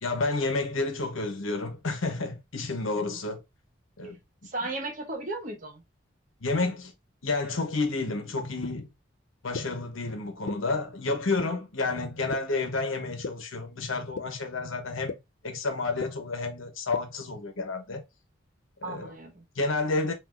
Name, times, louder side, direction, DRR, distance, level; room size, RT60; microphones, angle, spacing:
voice 1, 0.0-3.4 4.0-4.1 6.4-6.9 7.2-8.9 9.4-15.2 15.4-18.0 18.8-19.1 19.6-20.1, left 3 dB, 85° left, 1.0 m, -30 dB
voice 2, 4.4-5.8 18.8-19.5, right 2 dB, 40° right, 1.0 m, -35 dB
sound 1, 8.6-8.7 9.5-9.6 10.5-10.6 11.4-11.5 12.3-12.4 13.2-13.3 14.2-14.3 15.1-15.2 16.0-16.1 16.9-17.0, left 4 dB, 65° left, 0.4 m, -33 dB
5.9 x 2.6 x 2.5 m
head